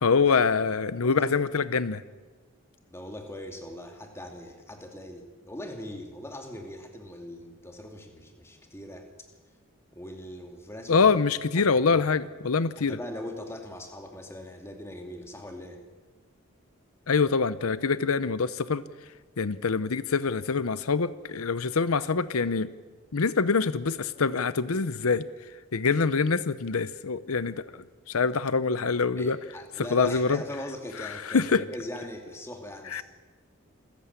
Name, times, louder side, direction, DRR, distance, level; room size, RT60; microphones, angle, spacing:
voice 1, 0.0-2.0 10.9-13.0 17.1-18.8 19.4-22.7 23.1-25.3 25.7-27.7 28.1-29.4 29.8-30.4 31.0-31.6 32.9-33.0, left 5 dB, 90° left, 15 dB, 0.7 m, -25 dB
voice 2, 1.0-1.4 2.9-9.1 9.9-11.1 11.6-12.1 12.8-15.8 29.2-33.0, left 1 dB, 10° left, 3 dB, 2.6 m, -40 dB
27.0 x 14.5 x 8.3 m, 1.4 s
head